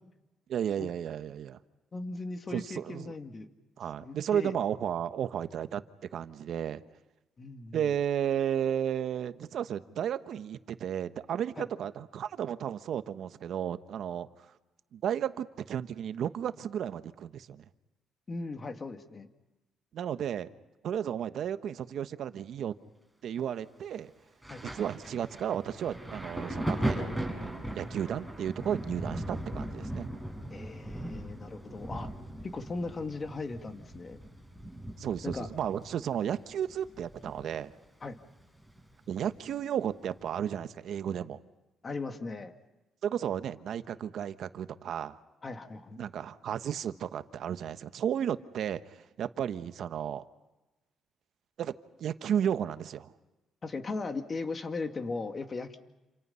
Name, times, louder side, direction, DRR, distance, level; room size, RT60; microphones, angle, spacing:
voice 1, 0.5-1.6 2.5-3.1 3.8-5.8 6.1-6.8 7.7-14.3 14.9-17.6 19.9-20.5 20.8-22.7 23.2-24.1 24.7-30.1 35.0-37.7 39.1-41.4 43.0-45.2 46.0-50.2 51.6-51.7 52.0-53.1, right 9 dB, 70° right, 11 dB, 1.1 m, -33 dB
voice 2, 1.9-3.5 4.0-4.5 7.4-7.9 11.6-11.7 18.3-19.3 24.5-24.6 30.5-32.1 32.5-34.2 35.2-35.5 38.0-38.2 41.8-42.5 45.4-46.0 53.6-55.8, left 3 dB, 35° left, 6 dB, 2.3 m, -38 dB
Thunder, 24.4-37.8 38.0-39.4 40.2-40.4, right 1 dB, 5° left, 6.6 m, -38 dB
28.5 x 27.5 x 5.7 m, 1.1 s
cardioid pair, 90°, 0 cm